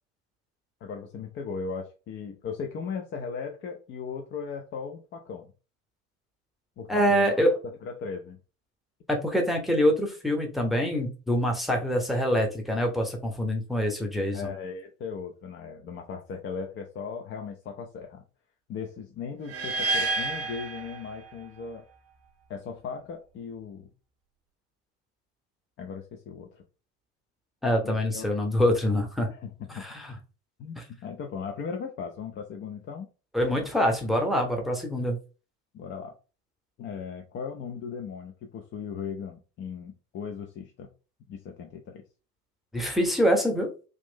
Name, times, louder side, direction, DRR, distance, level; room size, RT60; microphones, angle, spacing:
voice 1, 0.8-5.5 6.8-7.3 7.8-8.4 14.3-18.2 18.7-21.8 22.5-23.9 25.8-26.6 27.8-28.3 29.3-29.8 30.6-33.1 35.7-36.1 36.8-40.9 41.3-42.0, left 6 dB, 25° left, 3 dB, 0.5 m, -37 dB
voice 2, 6.9-7.6 9.1-14.5 27.6-29.3 29.8-30.1 33.3-35.2 42.7-43.7, equal, ahead, 2 dB, 0.8 m, -25 dB
sound 1, 19.5-21.6, right 3 dB, 35° right, 0.7 m, -30 dB
3.1 x 2.5 x 3.6 m, 0.33 s
figure-of-eight pair, 70°, 45 cm